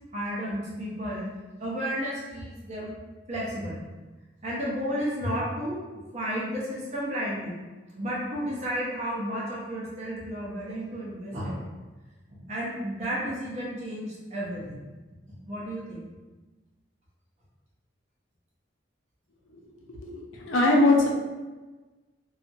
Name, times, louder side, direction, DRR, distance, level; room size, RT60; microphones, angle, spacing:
voice 1, 0.1-1.2 1.6-2.9 3.3-3.8 4.4-5.8 6.1-11.6 12.3-14.8 15.3-16.0, equal, 35° right, -6 dB, 0.7 m, -32 dB
voice 2, 19.9-21.1, left 2 dB, 80° left, -1 dB, 0.5 m, -22 dB
2.8 x 2.4 x 2.6 m, 1.2 s
head